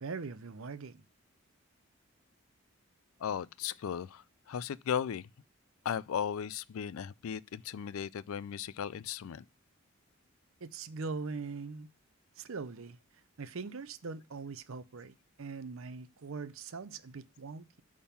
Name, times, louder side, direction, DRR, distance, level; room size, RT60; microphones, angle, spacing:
voice 1, 0.0-1.0 10.6-11.9 12.4-13.0 13.4-17.8, right 4 dB, 70° right, 0.6 m, -41 dB
voice 2, 3.2-5.3 5.8-9.4, left 8 dB, 75° left, 0.4 m, -36 dB
8.6 x 3.7 x 5.6 m
head